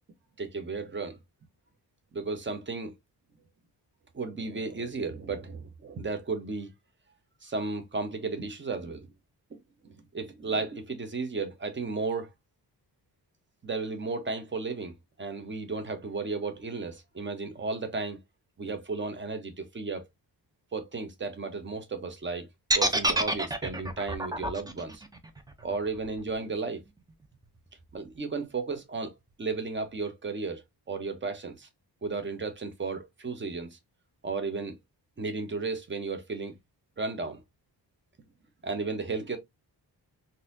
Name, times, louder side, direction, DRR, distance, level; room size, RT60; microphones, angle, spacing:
voice 1, 0.4-1.2 2.1-2.9 4.1-6.7 7.4-9.1 9.8-12.3 13.6-18.2 18.6-20.0 20.7-22.5 22.7-25.0 25.6-26.8 27.9-29.1 29.4-31.7 32.0-33.8 34.2-34.8 35.2-36.5 37.0-37.4 38.6-39.4, right 4 dB, 25° right, 0.8 m, -34 dB
sound 1, 22.7-26.8, right 1 dB, 10° right, 0.5 m, -28 dB
3.9 x 2.7 x 2.6 m
wide cardioid pair, 135°, 41 cm